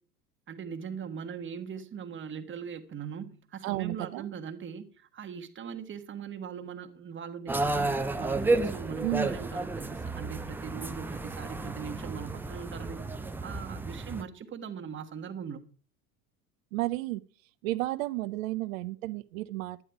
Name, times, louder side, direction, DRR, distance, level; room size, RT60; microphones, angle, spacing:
voice 1, 0.5-13.1 13.4-15.6, right 7 dB, 25° right, 6 dB, 1.4 m, -40 dB
voice 2, 3.6-4.3 9.0-9.3 16.7-17.2 17.6-19.8, right 18 dB, 55° right, 14 dB, 0.7 m, -32 dB
sound 1, 7.5-14.2, right 2 dB, 5° right, 0.4 m, -32 dB
11.0 x 9.6 x 4.7 m, 0.40 s
hypercardioid pair, 85°, 47 cm